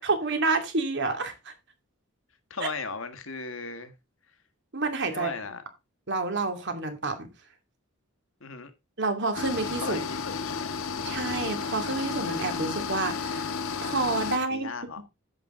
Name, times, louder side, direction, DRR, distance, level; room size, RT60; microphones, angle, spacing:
voice 1, 0.0-1.5 2.6-2.7 4.7-5.3 6.1-7.3 9.0-10.0 11.0-13.5 13.8-14.7 15.0-15.1, right 3 dB, 55° right, 2.5 m, -29 dB
voice 2, 2.5-3.9 5.1-5.6 8.4-8.7 9.8-10.8 14.5-15.0, left 4 dB, 65° left, 1.7 m, -36 dB
sound 1, 9.3-14.4, left 5 dB, 85° left, 1.4 m, -32 dB
11.0 x 8.2 x 3.7 m
head